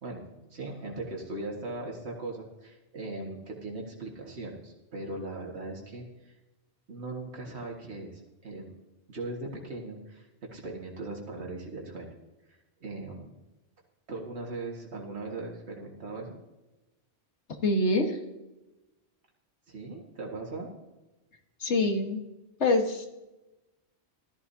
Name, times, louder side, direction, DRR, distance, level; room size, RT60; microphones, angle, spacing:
voice 1, 0.0-6.3 6.9-8.7 9.1-12.1 12.5-13.3 14.1-16.4 19.7-20.7, right 2 dB, 75° right, -1 dB, 2.1 m, -39 dB
voice 2, 17.6-18.2 21.6-22.2 22.6-23.1, left 2 dB, 85° left, 3 dB, 1.8 m, -25 dB
16.5 x 13.5 x 2.8 m, 1.0 s
omnidirectional pair, 1.1 m